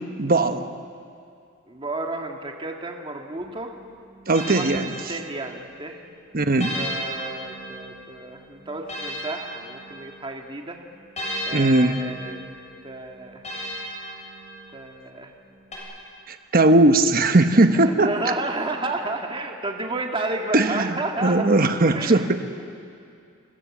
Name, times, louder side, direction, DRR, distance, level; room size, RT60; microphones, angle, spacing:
voice 1, 0.2-0.7 4.3-5.0 6.3-6.7 11.5-11.9 16.3-18.3 20.5-22.4, right 2 dB, 45° right, 7 dB, 1.1 m, -19 dB
voice 2, 1.7-3.7 4.5-6.0 6.7-10.8 11.5-12.4 12.8-13.4 14.7-15.3 17.7-21.5 21.9-22.2, right 2 dB, 25° right, 2 dB, 1.9 m, -31 dB
sound 1, 3.3-5.8 6.6-10.4 11.2-14.9 15.7-15.8, equal, 35° left, 7.6 m, -35 dB
30.0 x 25.0 x 7.4 m, 2.4 s
head